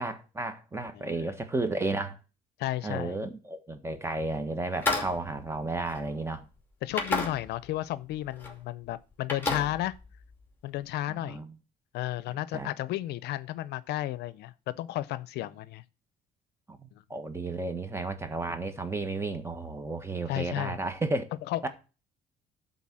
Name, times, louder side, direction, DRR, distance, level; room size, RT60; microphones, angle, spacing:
voice 1, 0.0-2.2 2.8-6.4 11.1-11.5 12.3-12.7 16.7-21.2 21.6-21.7, right 2 dB, 15° right, 1.5 m, -33 dB
voice 2, 0.9-1.3 2.6-3.2 6.8-9.9 10.6-11.4 11.9-15.8 20.3-20.8 21.5-21.7, left 15 dB, 75° left, 0.6 m, -33 dB
sound 1, 4.7-6.4 6.9-7.8 8.1-8.5 8.8-10.4, left 3 dB, 10° left, 2.6 m, -33 dB
12.0 x 4.1 x 7.4 m
cardioid pair, 110°, 17 cm